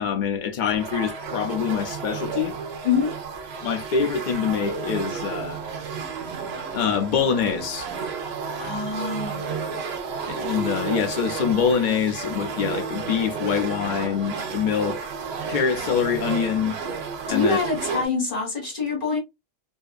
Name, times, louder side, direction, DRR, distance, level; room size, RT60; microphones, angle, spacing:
voice 1, 0.0-2.6 3.6-5.6 6.7-7.8 10.3-15.0 15.5-16.7 17.3-17.6, left 7 dB, 70° left, 0.4 m, -25 dB
sound 1, 0.7-18.1, right 5 dB, 65° right, 0.7 m, -32 dB
voice 2, 8.6-9.5 17.3-19.2, left 4 dB, 40° left, 1.5 m, -25 dB
2.7 x 2.4 x 2.3 m
omnidirectional pair, 1.4 m